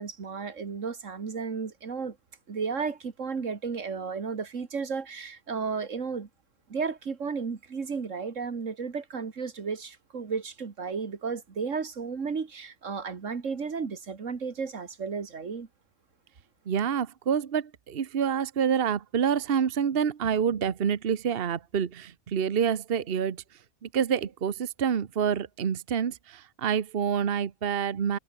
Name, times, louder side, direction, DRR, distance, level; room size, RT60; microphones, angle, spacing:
voice 1, 0.0-2.2 2.5-6.3 6.7-15.7, right 5 dB, 90° right, 2.2 m, -33 dB
voice 2, 16.7-23.4 23.8-28.2, right 7 dB, 55° right, 1.2 m, -27 dB
omnidirectional pair, 1.3 m